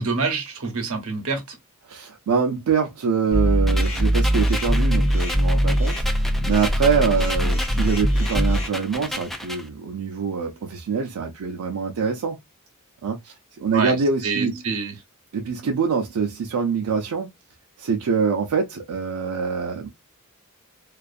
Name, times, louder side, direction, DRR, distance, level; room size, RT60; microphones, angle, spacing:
voice 1, 0.0-1.6 13.7-14.0 14.2-14.9, right 4 dB, 70° right, 0.8 m, -26 dB
voice 2, 1.8-12.4 13.0-14.6 15.3-17.3 17.8-19.9, right 5 dB, 85° right, 0.4 m, -24 dB
sound 1, 3.3-8.7, equal, 30° left, 0.9 m, -21 dB
sound 2, 3.7-9.7, left 1 dB, ahead, 0.4 m, -33 dB
2.4 x 2.4 x 2.4 m
head